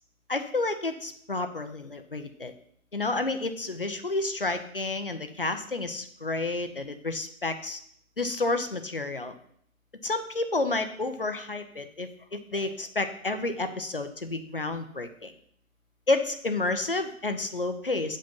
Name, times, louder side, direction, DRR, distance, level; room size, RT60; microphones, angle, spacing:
voice 1, 0.3-2.5 2.9-7.8 8.2-9.3 10.0-15.3 16.1-18.2, left 2 dB, 40° left, 8 dB, 0.7 m, -30 dB
8.7 x 5.3 x 5.4 m, 0.67 s
figure-of-eight pair, 165°, 43 cm